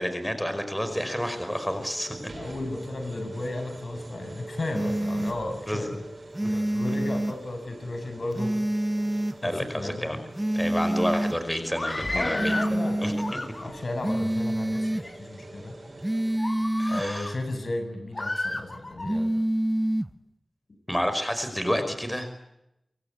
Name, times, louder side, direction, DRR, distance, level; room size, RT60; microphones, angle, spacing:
voice 1, 0.0-2.2 5.7-6.0 9.4-10.2 10.5-12.6 13.0-13.4 16.8-17.3 20.9-22.3, equal, 5° left, 8 dB, 5.2 m, -29 dB
sound 1, 0.8-16.4, right 2 dB, 55° right, 7.5 m, -45 dB
voice 2, 2.3-6.0 6.4-8.6 9.4-10.3 12.1-15.7 16.9-19.3, left 2 dB, 65° left, 7 dB, 7.6 m, -34 dB
sound 2, 4.7-5.4 6.3-7.4 8.3-9.4 10.3-11.4 12.4-13.4 14.0-15.1 16.0-17.1 19.0-20.1, right 1 dB, 15° right, 1.1 m, -27 dB
Screaming, 11.7-12.8 13.2-13.9 14.6-15.2 15.7-15.9 16.4-17.4 18.1-19.2, left 2 dB, 35° left, 3.2 m, -33 dB
28.0 x 24.0 x 8.4 m, 0.86 s
wide cardioid pair, 60°, 0 cm